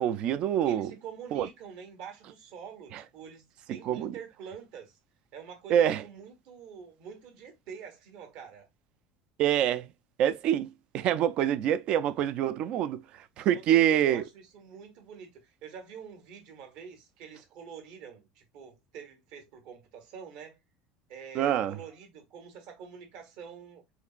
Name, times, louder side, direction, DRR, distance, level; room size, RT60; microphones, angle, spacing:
voice 1, 0.0-0.9 1.3-1.5 2.9-3.0 3.9-4.1 5.7-6.0 9.4-9.9 10.2-10.7 10.9-13.0 13.4-14.2 21.3-21.8, right 10 dB, 45° right, 0.3 m, -25 dB
voice 2, 0.6-5.0 5.3-8.7 13.3-20.6 21.1-23.8, right 7 dB, 60° right, 1.3 m, -46 dB
4.2 x 2.9 x 2.4 m
cardioid pair, 165°, 2 cm